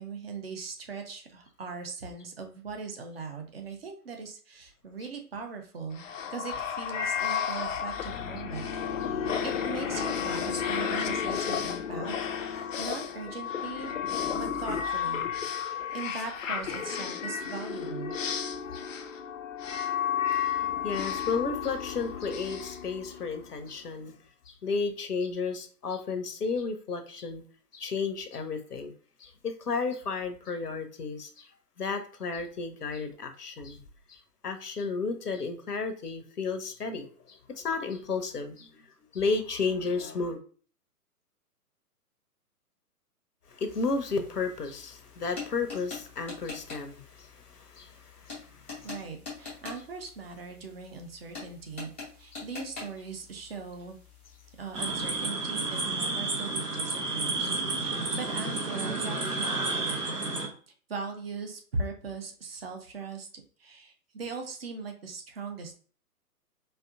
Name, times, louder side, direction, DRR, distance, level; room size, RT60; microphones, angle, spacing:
voice 1, 0.0-6.0 6.3-8.7 9.0-14.0 14.3-18.1 48.8-51.9 52.2-54.0 54.6-60.0 60.7-63.3 63.6-65.8, right 4 dB, 40° right, 0.7 m, -40 dB
sound 1, 5.9-23.6, left 8 dB, 55° left, 0.5 m, -32 dB
voice 2, 20.8-24.1 24.5-27.4 27.7-28.9 29.2-31.5 31.8-33.8 34.1-38.7 39.1-40.4 43.5-48.9 52.3-52.4, left 4 dB, 75° left, 0.8 m, -33 dB
sound 2, 43.7-55.2, left 4 dB, 10° left, 0.4 m, -46 dB
sound 3, 54.7-60.5, right 3 dB, 80° right, 1.1 m, -31 dB
4.3 x 2.6 x 2.5 m
figure-of-eight pair, 125°, 47 cm